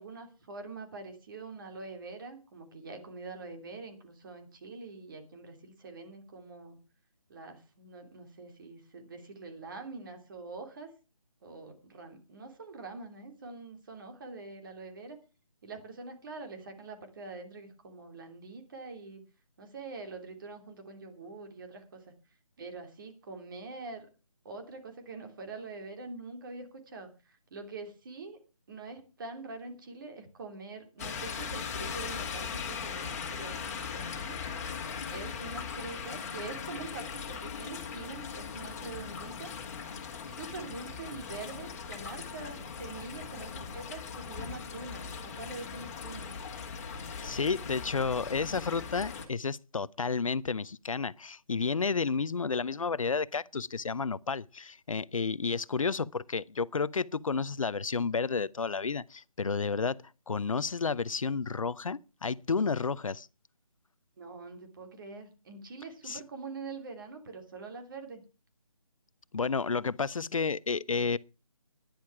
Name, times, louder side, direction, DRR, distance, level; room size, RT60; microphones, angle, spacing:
voice 1, 0.0-6.8 7.3-10.9 11.4-15.2 15.6-19.2 19.6-22.1 22.6-24.1 24.4-28.4 28.7-34.4 35.1-39.5 40.3-46.3 64.2-68.2, right 3 dB, 35° right, 3.0 m, -44 dB
sound 1, 31.0-49.3, left 6 dB, 25° left, 2.1 m, -39 dB
voice 2, 47.2-60.0 60.3-63.3 66.0-66.2 69.3-71.2, left 5 dB, 65° left, 0.6 m, -31 dB
11.5 x 10.5 x 5.9 m
figure-of-eight pair, 155°, 18 cm